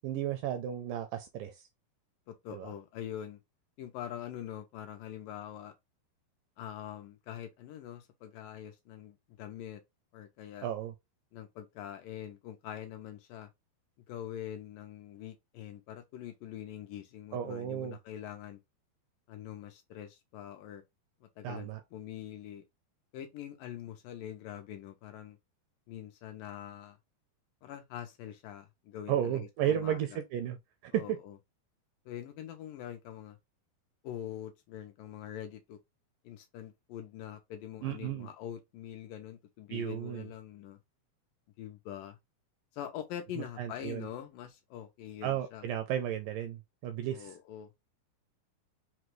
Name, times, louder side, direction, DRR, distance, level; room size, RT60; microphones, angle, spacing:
voice 1, 0.0-1.6 2.5-2.7 10.6-10.9 17.3-18.0 21.4-21.8 29.1-30.6 30.8-31.2 37.8-38.3 39.7-40.3 43.6-44.1 45.2-47.3, right 10 dB, 80° right, 2.0 m, -33 dB
voice 2, 2.3-3.4 3.8-5.7 6.6-9.8 10.1-10.7 11.3-13.5 14.1-18.6 19.3-20.8 21.2-22.6 23.1-25.4 25.9-27.0 27.6-30.0 30.9-31.4 32.1-33.4 34.0-35.8 36.2-40.8 41.6-42.2 42.7-45.7 47.1-47.7, left 10 dB, 80° left, 2.1 m, -44 dB
5.9 x 2.2 x 3.0 m
omnidirectional pair, 4.3 m